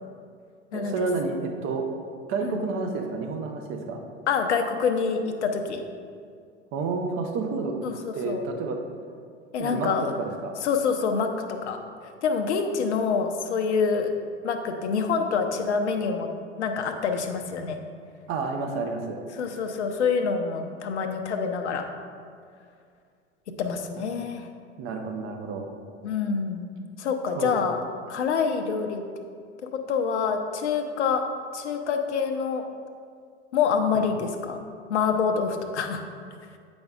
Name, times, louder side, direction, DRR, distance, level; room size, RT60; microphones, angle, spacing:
voice 1, 0.7-1.9 2.3-4.0 6.7-7.8 8.1-8.8 9.6-10.6 18.3-19.2 24.8-25.7 27.3-27.5 33.9-34.1, right 4 dB, 35° right, 3 dB, 0.8 m, -30 dB
voice 2, 4.3-5.8 7.8-8.4 9.5-10.1 10.6-11.8 12.2-14.1 14.4-16.3 16.6-17.8 19.3-21.9 23.6-24.5 26.0-26.7 27.0-27.8 28.1-29.0 29.9-31.2 31.5-32.6 33.5-34.6 34.9-36.0, left 5 dB, 70° left, 6 dB, 0.7 m, -26 dB
8.5 x 5.2 x 2.4 m, 2.2 s
figure-of-eight pair, 85°, 35 cm